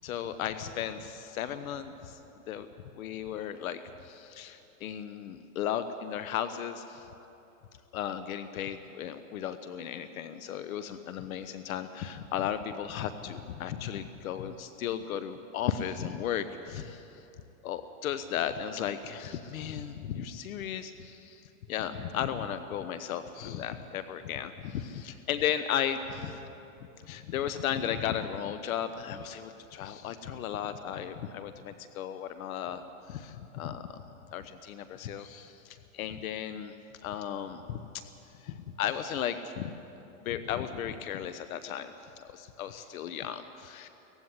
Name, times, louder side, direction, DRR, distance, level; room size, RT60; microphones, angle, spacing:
voice 1, 0.0-2.2 2.5-2.7 2.9-7.1 7.9-17.2 17.6-26.5 27.0-36.8 37.0-37.9 38.3-39.7 40.2-43.9, left 9 dB, 75° left, 11 dB, 1.0 m, -35 dB
18.0 x 15.5 x 9.6 m, 3.0 s
supercardioid pair, 135°, 42 cm